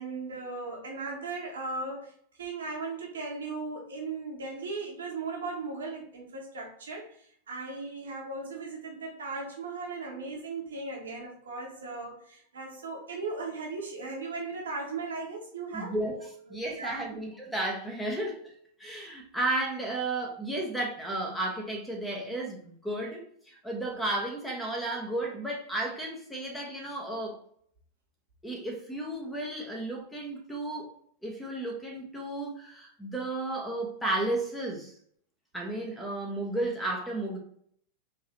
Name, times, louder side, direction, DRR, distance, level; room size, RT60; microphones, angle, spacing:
voice 1, 0.0-2.1 2.4-15.9 16.5-17.0, right 3 dB, 65° right, 0 dB, 1.0 m, -37 dB
voice 2, 15.7-18.5 18.8-27.4 28.4-30.9 31.2-34.9 35.5-37.4, right 2 dB, 5° left, 0 dB, 1.1 m, -33 dB
3.7 x 2.9 x 2.7 m, 0.62 s
figure-of-eight pair, 90°, 0 cm